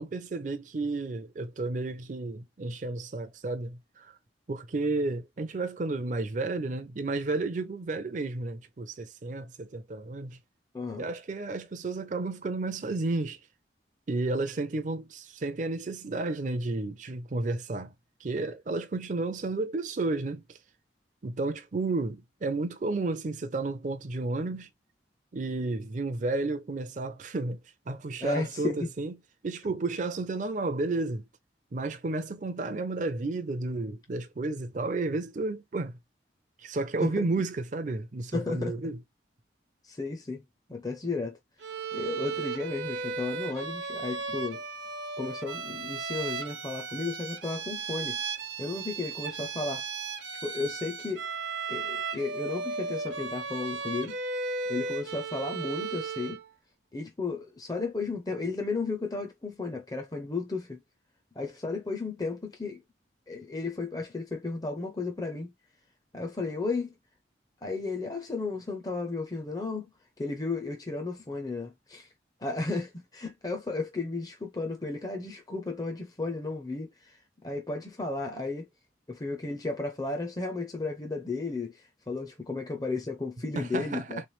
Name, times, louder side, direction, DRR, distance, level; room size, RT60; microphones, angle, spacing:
voice 1, 0.0-4.1 4.5-10.4 11.0-13.4 14.1-17.9 18.2-20.6 21.2-24.7 25.3-27.6 27.9-29.1 29.4-31.2 31.7-35.9 36.6-39.0 83.6-84.0, right 3 dB, 40° right, 0.5 m, -32 dB
voice 2, 10.7-11.1 28.2-28.9 37.0-37.2 38.3-38.9 39.8-40.4 40.7-41.4 41.9-44.6 45.2-48.2 48.6-49.9 50.4-51.3 51.7-54.2 54.7-56.4 56.9-60.8 61.4-62.8 63.3-65.5 66.1-66.9 67.6-69.9 70.2-72.1 72.4-78.7 79.1-84.2, left 3 dB, 20° left, 0.5 m, -34 dB
Bowed string instrument, 41.6-56.5, right 4 dB, 80° right, 0.8 m, -35 dB
3.4 x 3.2 x 3.0 m
head